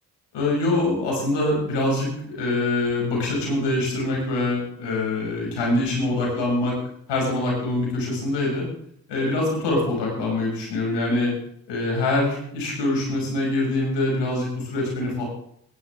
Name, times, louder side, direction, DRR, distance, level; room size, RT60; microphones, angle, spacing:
voice 1, 0.3-6.8 7.1-8.6 9.1-11.3 11.7-15.2, left 2 dB, 85° left, -2 dB, 6.2 m, -24 dB
15.5 x 11.0 x 3.6 m, 0.68 s
supercardioid pair, 40°, 41 cm